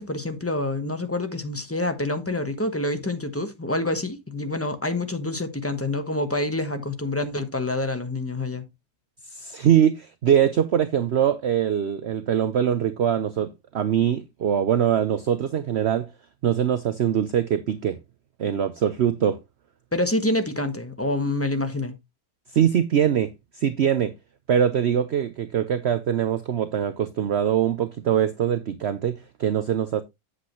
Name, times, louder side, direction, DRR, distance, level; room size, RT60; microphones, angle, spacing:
voice 1, 0.0-8.7 19.9-21.9, left 2 dB, 10° left, 0.9 m, -27 dB
voice 2, 9.3-16.1 16.4-18.0 18.4-19.4 22.5-23.3 23.6-24.1 24.5-30.0, right 9 dB, 60° right, 0.7 m, -23 dB
8.3 x 8.0 x 3.0 m
omnidirectional pair, 1.8 m